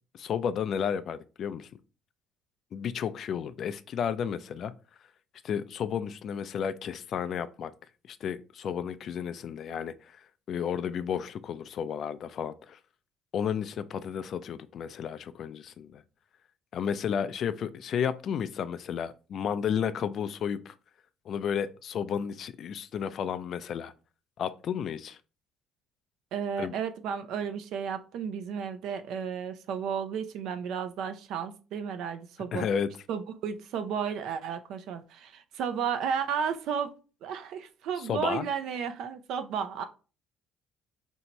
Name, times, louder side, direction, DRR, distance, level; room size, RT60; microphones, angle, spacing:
voice 1, 0.1-1.7 2.7-4.7 5.4-7.7 8.1-12.8 13.3-16.0 16.7-20.8 21.3-23.9 24.4-25.2 26.6-26.8 32.5-32.9 38.0-38.5, left 8 dB, 55° left, 0.3 m, -32 dB
voice 2, 26.3-32.6 33.1-36.9 37.2-39.8, right 7 dB, 70° right, 0.5 m, -33 dB
2.9 x 2.7 x 4.4 m
cardioid pair, 105°, 0 cm